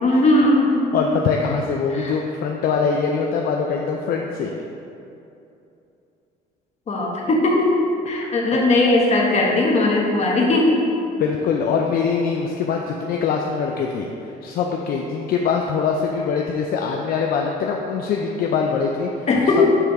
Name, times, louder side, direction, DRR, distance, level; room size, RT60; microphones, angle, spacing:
voice 1, 0.0-0.9 1.9-2.2 6.9-7.8 8.1-10.9 19.3-19.8, left 2 dB, 40° left, -2 dB, 1.2 m, -18 dB
voice 2, 0.9-4.5 8.2-8.3 11.2-19.3, left 5 dB, 60° left, 1 dB, 0.5 m, -23 dB
7.2 x 3.3 x 4.7 m, 2.7 s
cardioid pair, 110°, 17 cm